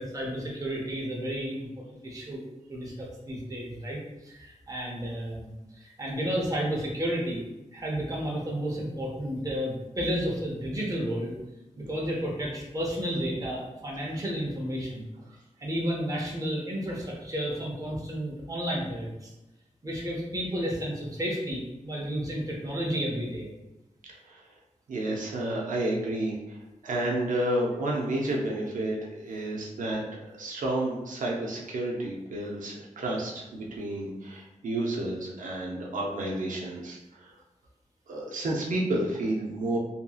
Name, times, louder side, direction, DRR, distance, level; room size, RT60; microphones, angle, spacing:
voice 1, 0.0-2.4 2.7-7.4 7.7-11.3 11.8-15.1 15.6-19.3 19.8-23.5, equal, 25° right, -3 dB, 0.7 m, -32 dB
voice 2, 24.1-24.4 24.9-37.3 38.1-39.8, right 1 dB, 85° right, -2 dB, 0.5 m, -31 dB
2.7 x 2.6 x 2.3 m, 0.96 s
wide cardioid pair, 130°, 13 cm